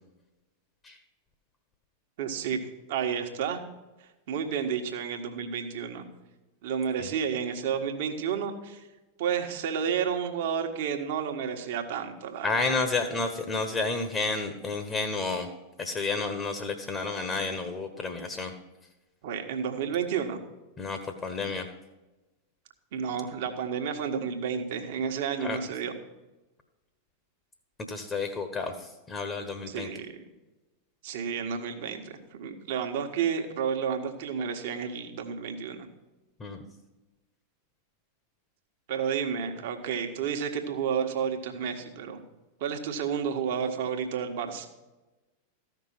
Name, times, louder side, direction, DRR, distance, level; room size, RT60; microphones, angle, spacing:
voice 1, 2.2-2.6 2.9-3.6 4.3-6.0 6.6-8.8 9.2-12.8 19.2-20.4 22.9-25.9 29.7-30.2 31.0-32.1 32.4-35.9 38.9-42.2 42.6-44.7, right 7 dB, 50° right, 5 dB, 1.4 m, -31 dB
voice 2, 12.4-15.5 15.8-18.5 20.8-21.7 25.4-25.6 27.9-29.9 36.4-36.6, left 3 dB, 20° left, 7 dB, 1.2 m, -31 dB
14.5 x 6.0 x 6.0 m, 1.1 s
figure-of-eight pair, 90°, 0 cm